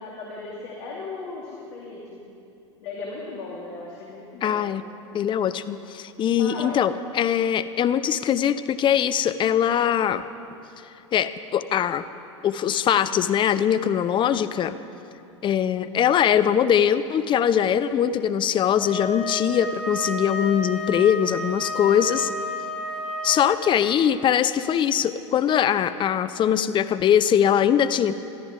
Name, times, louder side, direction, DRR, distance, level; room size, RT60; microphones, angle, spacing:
voice 1, 0.0-2.2 2.8-4.6 6.4-6.8 14.1-14.4, left 3 dB, 60° left, -3 dB, 2.5 m, -37 dB
voice 2, 4.4-4.8 5.1-10.2 11.1-12.0 12.4-14.8 15.4-22.3 23.2-28.1, left 9 dB, 30° left, 13 dB, 0.6 m, -22 dB
Wind instrument woodwind instrument, 18.8-23.7, left 1 dB, 30° right, 4.3 m, -31 dB
21.5 x 14.0 x 3.7 m, 2.7 s
hypercardioid pair, 85°, 16 cm